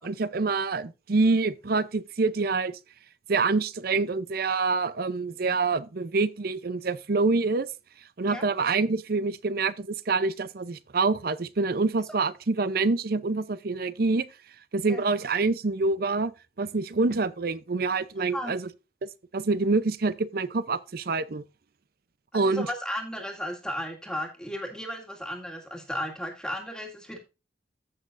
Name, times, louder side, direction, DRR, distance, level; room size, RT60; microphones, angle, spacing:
voice 1, 0.0-2.7 3.3-7.7 8.2-14.2 14.7-16.3 16.6-18.7 19.0-21.4 22.3-22.7, right 3 dB, 55° right, 0.6 m, -26 dB
voice 2, 22.3-27.2, equal, 5° left, 2.0 m, -35 dB
15.0 x 6.1 x 2.5 m
head